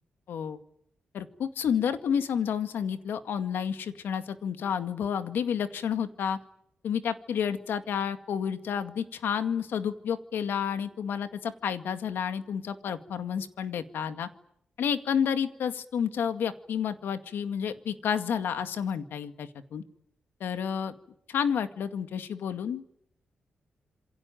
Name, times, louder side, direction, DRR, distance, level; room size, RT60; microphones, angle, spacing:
voice 1, 0.3-0.6 1.1-6.4 6.8-14.3 14.8-19.8 20.4-20.9 21.3-22.9, left 8 dB, 85° left, 9 dB, 2.1 m, -30 dB
27.5 x 23.0 x 9.2 m, 0.72 s
wide cardioid pair, 125°, 3 cm